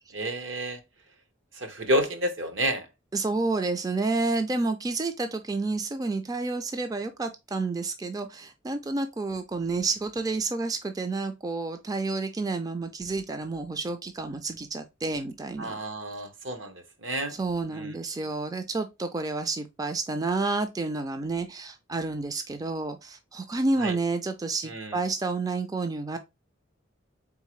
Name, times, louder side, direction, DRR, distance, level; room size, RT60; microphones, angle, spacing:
voice 1, 0.1-0.8 1.5-2.9 15.6-17.3 17.7-18.0 23.8-24.0 24.7-25.0, right 1 dB, 70° right, 1.0 m, -30 dB
voice 2, 3.1-15.8 17.3-26.2, right 3 dB, 20° right, 0.3 m, -30 dB
4.1 x 3.6 x 3.1 m
head